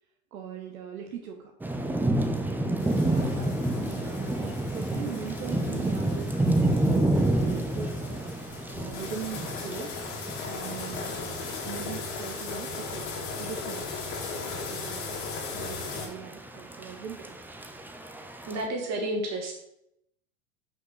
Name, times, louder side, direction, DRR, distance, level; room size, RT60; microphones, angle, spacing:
voice 1, 0.3-1.5 2.9-10.0 10.4-11.3 11.6-13.1 13.4-13.9 14.7-15.3 15.5-17.4, right 7 dB, 75° right, 2 dB, 1.1 m, -41 dB
Thunder / Rain, 1.6-18.6, right 1 dB, 5° right, 0.6 m, -30 dB
sound 1, 2.8-16.1, left 4 dB, 55° left, 2.5 m, -38 dB
voice 2, 18.5-19.6, right 1 dB, 35° right, 1 dB, 2.5 m, -31 dB
5.9 x 5.7 x 5.6 m, 0.80 s
hypercardioid pair, 90°, 43 cm